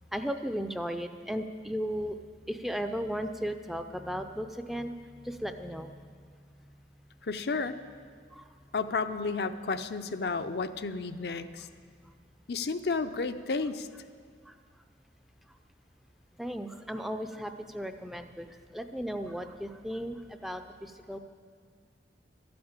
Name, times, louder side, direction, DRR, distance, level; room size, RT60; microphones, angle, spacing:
voice 1, 0.1-2.2 2.5-5.9 8.3-8.5 12.0-12.1 14.5-14.6 15.5-15.6 16.4-21.2, equal, ahead, 7 dB, 0.5 m, -36 dB
voice 2, 7.2-7.8 8.7-11.7 12.5-13.9, left 4 dB, 65° left, 9 dB, 0.5 m, -32 dB
12.5 x 8.6 x 8.8 m, 2.1 s
head